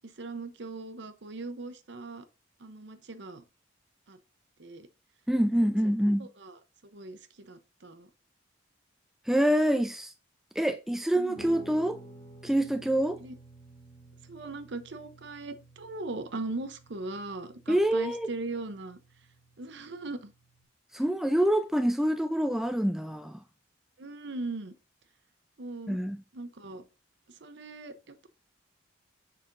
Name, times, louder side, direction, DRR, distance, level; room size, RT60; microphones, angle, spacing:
voice 1, 0.0-2.3 2.6-3.4 4.1-4.2 4.6-4.9 5.8-5.9 6.2-8.1 11.1-11.5 13.2-13.4 14.2-19.0 19.6-20.3 24.0-24.8 25.6-26.0 26.3-26.8 27.3-28.3, right 3 dB, 60° right, 0.7 m, -39 dB
voice 2, 5.3-6.3 9.3-10.1 10.6-12.0 12.4-13.2 17.7-18.3 20.9-23.4 25.9-26.2, right 1 dB, ahead, 0.4 m, -26 dB
Guitar, 11.3-20.6, right 1 dB, 25° left, 1.2 m, -53 dB
6.6 x 5.6 x 2.5 m
head